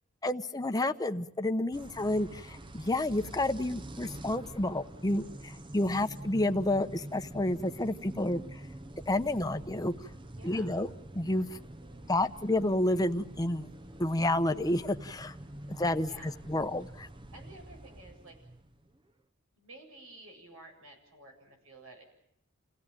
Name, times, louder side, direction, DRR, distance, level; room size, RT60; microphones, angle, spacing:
voice 1, 0.2-8.6 9.1-9.9 10.4-10.9 11.1-11.5 12.1-13.7 14.0-15.3 15.7-17.1, left 1 dB, 20° left, 8 dB, 0.9 m, -30 dB
sound 1, 1.7-19.0, right 1 dB, 25° right, 0.9 m, -46 dB
voice 2, 10.4-10.9 15.7-16.4 17.3-18.4 19.6-22.0, right 2 dB, 80° right, 3 dB, 7.7 m, -52 dB
29.0 x 16.5 x 9.0 m, 0.77 s
head